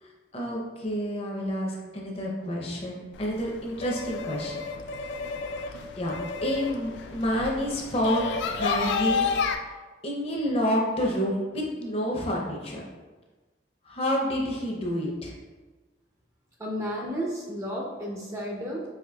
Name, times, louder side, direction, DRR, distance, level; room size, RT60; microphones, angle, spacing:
voice 1, 0.3-4.6 5.6-9.3 10.0-12.8 13.9-15.3, equal, 30° left, -1 dB, 0.6 m, -29 dB
sound 1, 3.1-9.6, left 5 dB, 75° left, 0.3 m, -31 dB
voice 2, 16.6-18.8, equal, 15° right, -2 dB, 0.4 m, -32 dB
4.9 x 2.7 x 2.2 m, 1.3 s
head